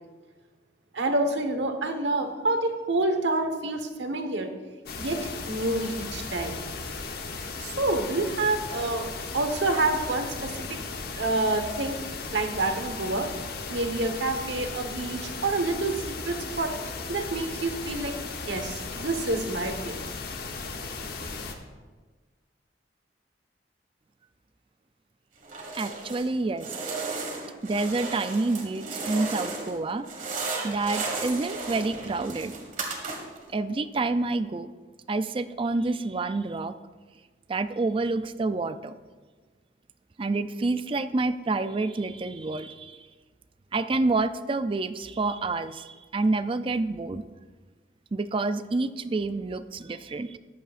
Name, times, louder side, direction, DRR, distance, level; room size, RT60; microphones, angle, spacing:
voice 1, 0.9-4.5 5.0-6.6 7.6-9.1 9.3-10.8 11.2-13.3 13.7-16.7 17.1-18.2 18.5-20.1, right 2 dB, 75° right, 6 dB, 1.2 m, -28 dB
sound 1, 4.9-21.5, left 4 dB, 55° left, 1.0 m, -36 dB
sound 2, 25.4-26.3 26.6-29.8 30.0-33.4, right 3 dB, 45° right, 1.7 m, -34 dB
voice 2, 25.7-26.7 27.6-30.1 30.6-32.6 33.5-34.7 35.1-36.7 37.5-38.9 40.2-43.0 43.7-47.2 48.1-50.4, right 3 dB, 30° right, 12 dB, 0.4 m, -28 dB
14.5 x 11.0 x 2.5 m, 1.4 s
head